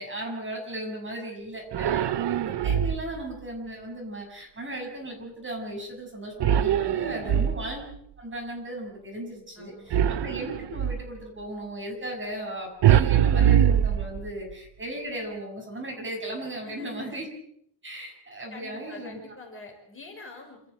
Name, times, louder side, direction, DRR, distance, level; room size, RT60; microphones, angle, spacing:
voice 1, 0.0-7.8 8.2-17.3 17.8-19.2, right 1 dB, 30° right, 1 dB, 6.5 m, -36 dB
sound 1, 1.7-3.2 6.4-8.0 9.9-11.1 12.8-14.5, right 10 dB, 85° right, 0.8 m, -23 dB
voice 2, 1.8-2.5 6.8-7.6 9.5-10.2 16.6-17.2 18.5-20.6, left 3 dB, 30° left, 2 dB, 5.1 m, -47 dB
27.5 x 14.0 x 7.9 m, 0.71 s
wide cardioid pair, 170°, 40 cm